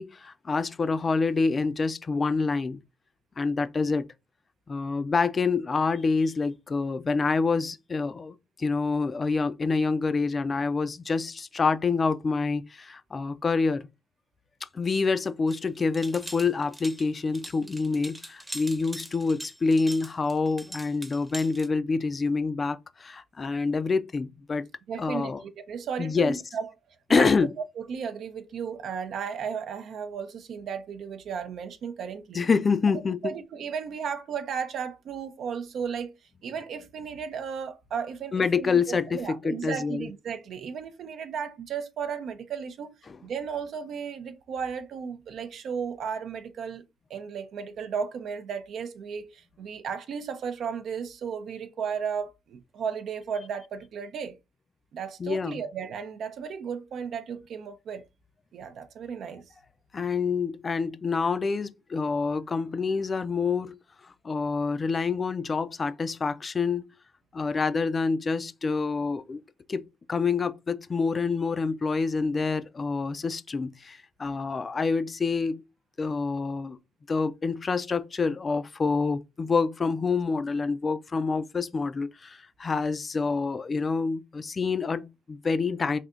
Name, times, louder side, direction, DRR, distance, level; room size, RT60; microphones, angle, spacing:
voice 1, 0.0-2.8 3.4-4.1 4.7-13.9 14.7-24.6 25.0-25.4 26.0-26.3 27.1-27.5 32.3-33.3 38.3-40.1 43.1-43.2 55.2-55.6 59.9-63.7 64.0-66.8 67.3-69.4 69.7-75.6 76.0-76.8 77.1-86.0, left 4 dB, 30° left, 0.4 m, -27 dB
sound 1, 15.5-21.7, right 1 dB, 10° right, 0.8 m, -42 dB
voice 2, 24.9-26.7 27.1-27.3 27.8-32.5 33.2-36.1 36.4-42.9 43.2-46.8 47.1-54.4 54.9-58.0 58.5-59.5, right 7 dB, 65° right, 0.5 m, -34 dB
3.4 x 2.7 x 3.7 m
cardioid pair, 120°, 0 cm